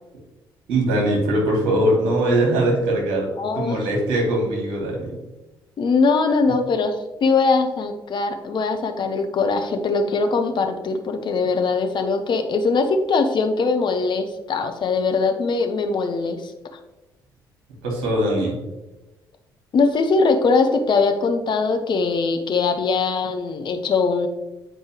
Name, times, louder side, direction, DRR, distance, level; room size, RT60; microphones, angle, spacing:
voice 1, 0.7-3.3 3.5-5.1 17.8-18.6, right 1 dB, 65° right, -2 dB, 2.3 m, -21 dB
voice 2, 3.4-3.8 5.8-7.0 7.2-16.5 19.7-24.3, left 4 dB, 45° left, 6 dB, 0.9 m, -21 dB
9.1 x 4.5 x 3.1 m, 1.0 s
figure-of-eight pair, 45°, 11 cm